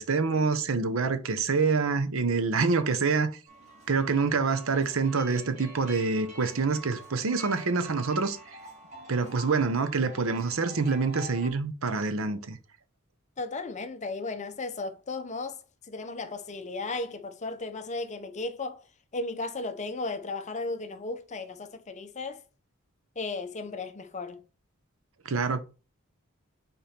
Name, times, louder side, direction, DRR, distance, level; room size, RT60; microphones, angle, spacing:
voice 1, 0.0-3.4 3.9-8.4 9.1-12.6 25.2-25.6, right 4 dB, 75° right, 0.8 m, -26 dB
sound 1, 3.5-11.5, right 1 dB, 35° right, 2.3 m, -47 dB
voice 2, 13.4-15.6 15.9-18.8 19.1-22.4 23.2-24.4, left 3 dB, 35° left, 0.7 m, -35 dB
5.2 x 4.4 x 4.3 m
head